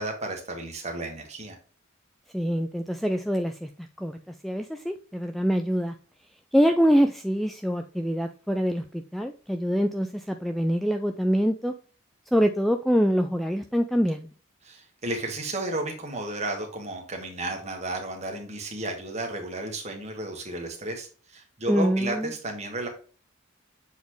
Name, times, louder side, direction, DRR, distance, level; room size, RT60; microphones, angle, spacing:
voice 1, 0.0-1.6 14.6-22.9, right 2 dB, 35° right, 3 dB, 1.7 m, -33 dB
voice 2, 2.3-3.7 4.0-4.2 4.4-5.9 6.5-11.7 12.3-14.3 21.7-22.3, equal, ahead, 5 dB, 0.3 m, -25 dB
7.2 x 4.1 x 3.2 m, 0.37 s
head